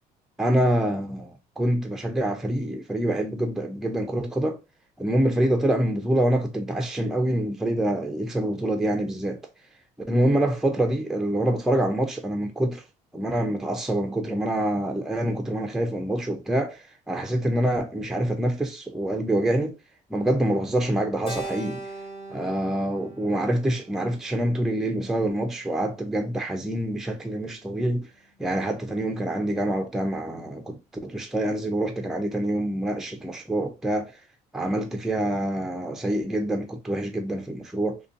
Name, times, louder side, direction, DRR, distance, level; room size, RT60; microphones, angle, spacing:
voice 1, 0.4-4.6 5.0-9.4 10.1-12.8 13.1-19.8 20.1-21.8 22.3-28.1 28.4-34.1 34.5-38.0, right 1 dB, ahead, 0.4 m, -26 dB
Keyboard (musical), 21.3-25.7, right 2 dB, 30° left, 0.8 m, -40 dB
2.5 x 2.2 x 2.5 m
cardioid pair, 110°, 17 cm